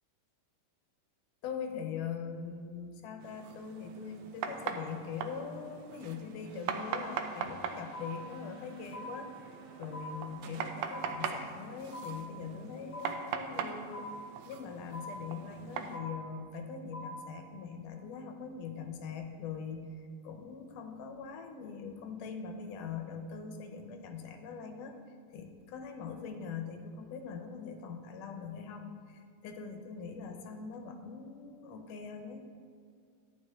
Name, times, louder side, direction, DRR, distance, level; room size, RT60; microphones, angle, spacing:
voice 1, 1.4-14.1 14.5-25.0 25.3-32.5, left 6 dB, 85° left, 5 dB, 2.4 m, -42 dB
sound 1, 3.2-16.0, right 7 dB, 80° right, 1.7 m, -41 dB
sound 2, 6.5-16.3, right 5 dB, 55° right, 1.1 m, -57 dB
sound 3, 7.9-8.6 8.9-9.7 9.9-10.7 10.9-11.7 11.9-12.7 12.9-13.7 13.9-14.7 14.9-15.7 15.9-16.7 16.9-17.7, left 1 dB, 50° left, 1.1 m, -45 dB
11.0 x 9.1 x 3.6 m, 2.3 s
omnidirectional pair, 3.7 m